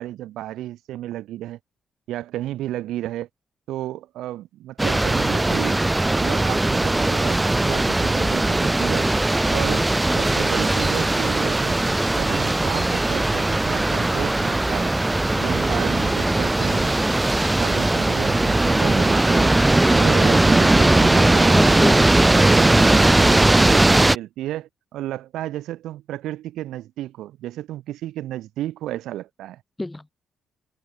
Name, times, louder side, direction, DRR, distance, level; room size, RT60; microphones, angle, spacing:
voice 1, 0.0-1.6 2.1-3.3 3.7-5.8 6.2-9.1 9.5-14.9 15.4-17.0 17.6-19.5 19.9-22.0 22.3-29.6, right 14 dB, 85° right, 2.8 m, -32 dB
sound 1, 4.8-24.2, right 2 dB, 15° right, 0.4 m, -19 dB
voice 2, 21.5-22.1 29.8-30.1, left 2 dB, 10° left, 2.8 m, -28 dB
cardioid pair, 90°, 0 cm